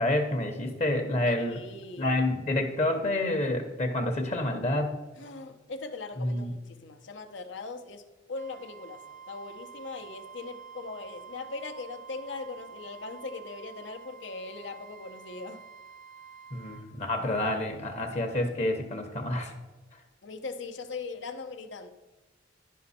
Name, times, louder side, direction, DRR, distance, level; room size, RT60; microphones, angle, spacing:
voice 1, 0.0-1.6 2.0-5.0 6.2-6.5 16.5-19.5, left 1 dB, 35° left, 5 dB, 0.9 m, -28 dB
voice 2, 1.3-2.2 5.2-9.0 9.3-15.6 20.2-21.9, left 3 dB, 70° left, 6 dB, 0.8 m, -40 dB
Wind instrument woodwind instrument, 8.3-16.9, right 7 dB, 40° right, 0.5 m, -48 dB
11.0 x 5.2 x 4.2 m, 1.2 s
head